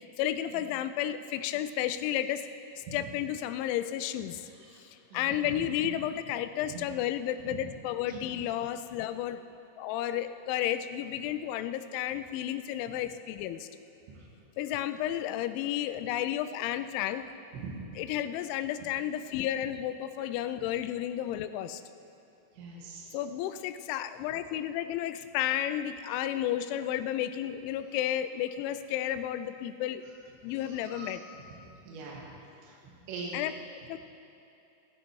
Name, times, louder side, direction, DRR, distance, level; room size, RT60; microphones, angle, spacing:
voice 1, 0.2-2.4 2.9-4.4 5.1-9.4 9.8-13.7 14.6-17.2 18.0-21.8 23.1-30.0 30.4-31.2 33.3-33.5 33.9-34.0, left 11 dB, 85° left, 10 dB, 2.8 m, -32 dB
voice 2, 5.1-5.6 6.7-6.8 7.5-7.6 8.1-8.3 14.1-14.3 17.5-18.0 20.2-20.3 22.6-23.1 30.5-31.2 31.9-32.3 32.6-33.4, right 4 dB, 70° right, -3 dB, 3.8 m, -43 dB
16.0 x 11.0 x 4.6 m, 2.8 s
omnidirectional pair, 5.6 m